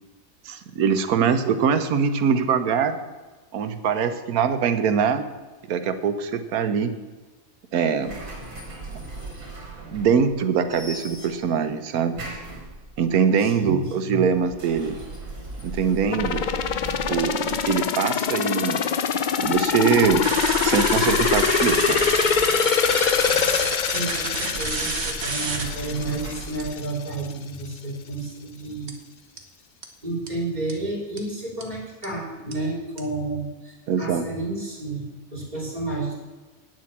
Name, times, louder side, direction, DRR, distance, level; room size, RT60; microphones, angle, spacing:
voice 1, 0.4-3.0 3.5-5.2 5.7-6.9 7.7-8.1 9.9-12.2 13.0-15.0 15.6-16.4 17.1-18.8 19.4-20.3 20.6-22.0 33.9-34.2, right 6 dB, 85° right, 10 dB, 1.3 m, -23 dB
sound 1, 8.0-10.4 10.7-11.6 12.1-13.1 14.3-18.0 19.4-23.4 24.5-26.7, right 2 dB, 65° right, 3.1 m, -38 dB
voice 2, 13.4-14.2 23.8-28.9 30.0-36.1, right 2 dB, 30° right, -3 dB, 3.3 m, -31 dB
sound 2, 16.1-26.9 27.2-27.3, left 7 dB, 65° left, 0.4 m, -24 dB
sound 3, 20.2-25.6 26.0-26.1 26.6-26.8 28.9-29.0 29.4-29.5 29.8-29.9 30.3-30.4 30.7-30.8 31.2-31.3 31.6-31.7 32.0-32.1 32.5-32.6 33.0-33.1, right 4 dB, 50° right, 1.4 m, -29 dB
9.4 x 7.6 x 7.3 m, 1.3 s
omnidirectional pair, 1.5 m